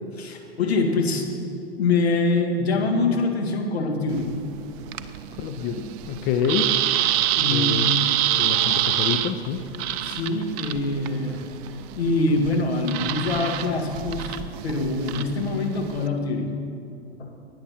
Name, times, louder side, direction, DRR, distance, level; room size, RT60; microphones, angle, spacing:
voice 1, 0.2-1.3 1.8-4.3 7.3-8.2 10.0-11.4 12.0-16.5 17.0-17.4, left 3 dB, 70° left, 2 dB, 2.1 m, -24 dB
sound 1, 4.1-16.1, right 12 dB, 30° right, 0.5 m, -27 dB
voice 2, 5.4-6.7 7.5-7.9 8.4-9.6, left 7 dB, 30° left, 7 dB, 0.7 m, -27 dB
17.0 x 9.8 x 4.3 m, 2.5 s
figure-of-eight pair, 110°, 32 cm